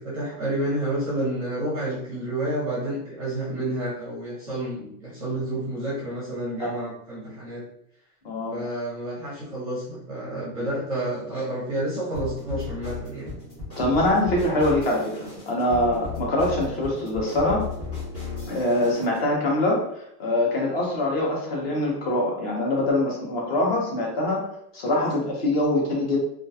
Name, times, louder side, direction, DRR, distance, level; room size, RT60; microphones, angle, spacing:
voice 1, 0.0-7.7 8.5-13.3, right 1 dB, 25° right, -7 dB, 0.4 m, -30 dB
voice 2, 8.2-8.6 13.8-17.6 18.5-24.4 24.7-26.2, left 1 dB, 40° left, -2 dB, 0.6 m, -24 dB
sound 1, 12.1-19.3, left 4 dB, 10° left, 1.0 m, -35 dB
2.3 x 2.2 x 2.5 m, 0.74 s
supercardioid pair, 180°, 47 cm